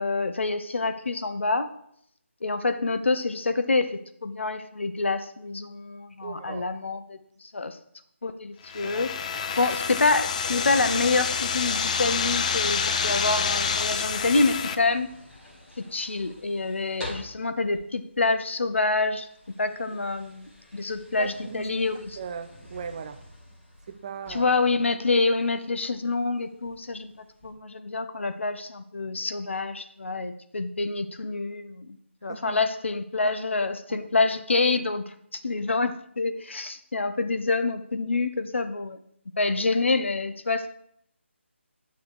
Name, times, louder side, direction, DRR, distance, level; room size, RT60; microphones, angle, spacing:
voice 1, 0.0-1.7 2.4-7.8 8.2-9.1 9.6-15.1 15.8-19.3 19.6-22.2 24.3-35.1 35.4-39.0 39.4-40.7, left 3 dB, 65° left, 10 dB, 0.9 m, -27 dB
voice 2, 6.2-6.8 8.8-9.1 20.7-20.9 21.2-21.7 22.2-23.2 23.9-24.5 32.3-32.6 33.9-34.1, right 6 dB, 30° right, 10 dB, 0.7 m, -38 dB
sound 1, 8.6-14.8, left 6 dB, 35° left, 0.6 m, -27 dB
sound 2, 10.5-27.5, left 2 dB, 10° left, 2.8 m, -49 dB
9.5 x 6.8 x 4.8 m, 0.69 s
figure-of-eight pair, 155°, 7 cm